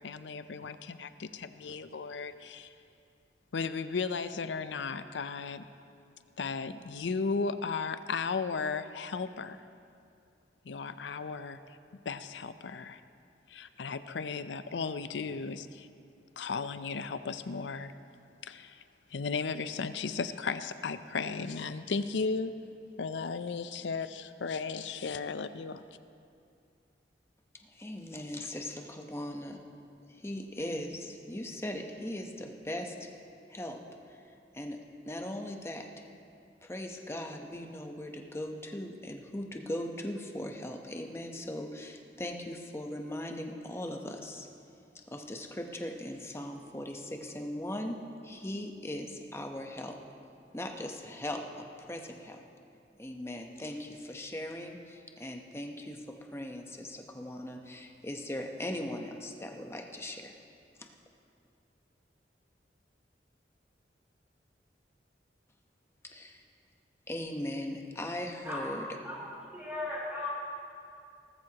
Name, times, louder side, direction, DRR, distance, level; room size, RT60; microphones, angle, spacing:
voice 1, 0.0-2.7 3.5-5.7 6.4-9.6 10.6-11.6 12.1-13.0 13.5-15.9 16.4-17.9 18.4-18.8 19.1-22.6 23.0-25.8, left 4 dB, 90° left, 12 dB, 0.5 m, -35 dB
voice 2, 27.6-29.6 30.1-33.1 33.5-34.8 35.1-36.1 36.6-44.5 45.1-50.0 50.5-52.4 53.0-60.3 60.8-60.9 66.0-66.4 67.1-68.9, left 1 dB, 15° left, 3 dB, 0.9 m, -39 dB
voice 3, 69.0-70.3, left 2 dB, 15° right, -11 dB, 3.0 m, -37 dB
18.5 x 14.0 x 2.9 m, 2.5 s
head